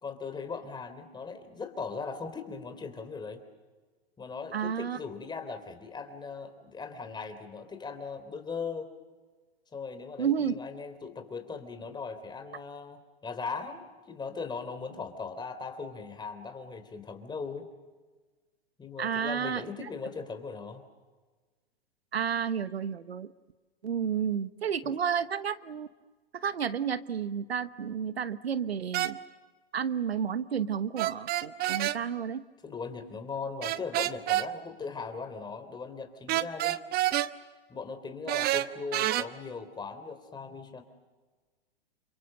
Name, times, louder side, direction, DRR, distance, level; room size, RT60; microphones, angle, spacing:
voice 1, 0.0-3.4 4.2-8.9 9.7-17.7 18.8-20.8 24.8-24.9 32.6-36.8 37.7-40.8, left 4 dB, 15° left, 7 dB, 3.6 m, -39 dB
voice 2, 4.5-5.0 10.2-10.5 19.0-19.9 22.1-23.3 23.8-25.9 26.3-29.2 29.7-32.4, right 8 dB, 90° right, 15 dB, 1.1 m, -31 dB
sound 1, 28.9-29.1 31.0-32.0 33.6-34.5 36.3-37.3 38.3-39.3, right 15 dB, 30° right, 1.0 m, -28 dB
29.5 x 26.0 x 6.7 m, 1.3 s
hypercardioid pair, 115°, 30 cm